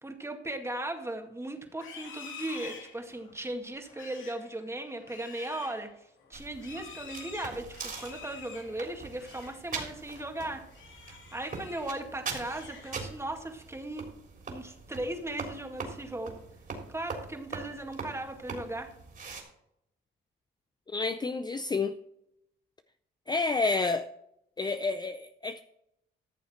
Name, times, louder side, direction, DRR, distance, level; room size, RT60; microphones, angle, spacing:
voice 1, 0.0-5.9 6.3-10.6 11.1-14.1 14.5-16.4 16.9-18.9, right 1 dB, 15° right, 2.1 m, -37 dB
Livestock farm animals working animals, 1.7-9.6 10.0-10.3 10.7-11.9 12.3-13.3, left 6 dB, 75° left, 2.6 m, -48 dB
sound 1, 6.3-19.4, right 4 dB, 45° right, 3.6 m, -42 dB
voice 2, 20.9-22.0 23.3-24.1 24.6-25.6, left 3 dB, 20° left, 0.5 m, -29 dB
14.0 x 7.0 x 4.4 m
cardioid pair, 90°, 20 cm